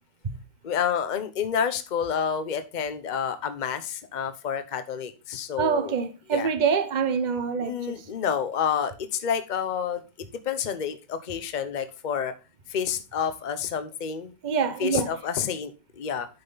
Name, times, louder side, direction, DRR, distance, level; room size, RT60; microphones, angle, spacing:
voice 1, 0.6-5.9 6.3-6.5 7.6-12.3 12.7-14.3 14.8-16.3, left 7 dB, 75° left, 0.4 m, -29 dB
voice 2, 5.6-8.1 14.4-15.2, right 6 dB, 50° right, 0.5 m, -26 dB
10.0 x 5.9 x 3.9 m
omnidirectional pair, 2.1 m